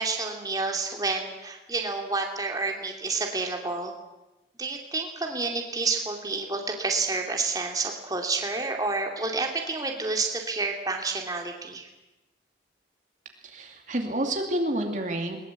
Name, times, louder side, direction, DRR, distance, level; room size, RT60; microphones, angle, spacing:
voice 1, 0.0-3.9 4.6-11.9, right 3 dB, 20° right, 2 dB, 2.7 m, -29 dB
voice 2, 13.4-15.4, right 1 dB, 40° right, 3 dB, 2.6 m, -29 dB
21.5 x 21.0 x 8.3 m, 1.0 s
head